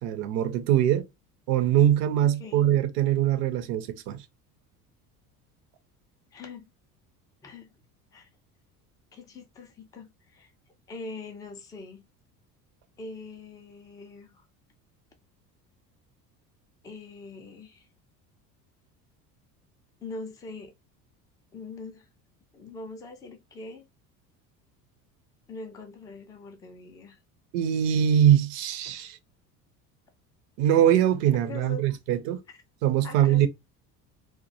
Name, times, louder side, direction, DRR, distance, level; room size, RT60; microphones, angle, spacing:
voice 1, 0.0-1.0 1.5-4.2 27.5-29.2 30.6-32.4 32.8-33.5, right 11 dB, 50° right, 0.6 m, -22 dB
voice 2, 6.3-6.7 7.4-7.7 8.1-8.3 9.1-10.5 10.9-12.0 13.0-14.4 16.8-17.9 20.0-20.7 21.5-22.1 22.5-23.9 25.5-27.2 31.5-31.8 33.0-33.5, left 3 dB, 10° left, 0.3 m, -42 dB
2.2 x 2.1 x 2.6 m
figure-of-eight pair, 65°, 49 cm